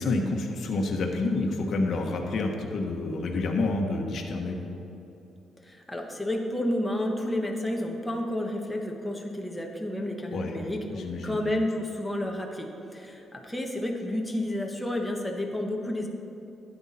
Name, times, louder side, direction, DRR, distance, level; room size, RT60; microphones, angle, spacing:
voice 1, 0.0-4.6 10.3-10.5 10.9-11.4, left 2 dB, 60° left, 1 dB, 1.2 m, -28 dB
voice 2, 5.6-16.1, left 1 dB, 10° left, 0 dB, 1.2 m, -31 dB
12.0 x 9.0 x 4.2 m, 2.8 s
cardioid pair, 90°, 0 cm